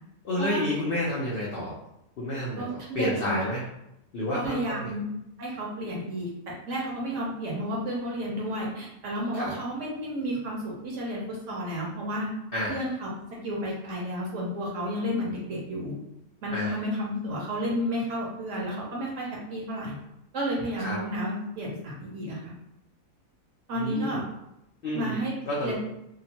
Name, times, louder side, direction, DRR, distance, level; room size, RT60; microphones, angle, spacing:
voice 1, 0.2-1.7 2.2-3.6 4.1-4.9 9.3-9.5 12.5-12.8 16.5-16.8 20.8-21.0 23.7-24.2 24.8-25.2 25.5-25.7, left 1 dB, 80° left, -5 dB, 0.5 m, -30 dB
voice 2, 2.6-3.4 4.4-5.0 5.4-12.3 12.7-16.0 16.4-19.9 20.3-22.5 23.7-24.2 24.9-25.3 25.6-25.7, equal, 60° right, -3 dB, 0.9 m, -32 dB
2.8 x 2.0 x 2.7 m, 0.84 s
omnidirectional pair, 1.6 m